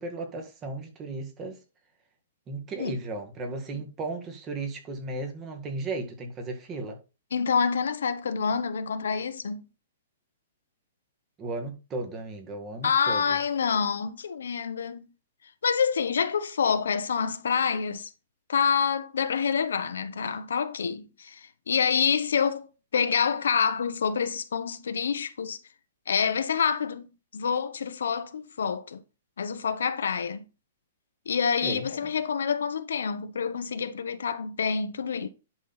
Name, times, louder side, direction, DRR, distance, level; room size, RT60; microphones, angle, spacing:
voice 1, 0.0-1.6 2.5-7.0 11.4-13.4 31.6-32.1, right 2 dB, 20° right, 1.8 m, -35 dB
voice 2, 7.3-9.7 12.8-15.1 15.6-18.1 18.5-22.7 22.9-25.6 26.1-29.0 29.4-30.5 31.3-35.3, left 6 dB, 90° left, 0.9 m, -27 dB
10.5 x 4.2 x 4.1 m
hypercardioid pair, 155°, 0 cm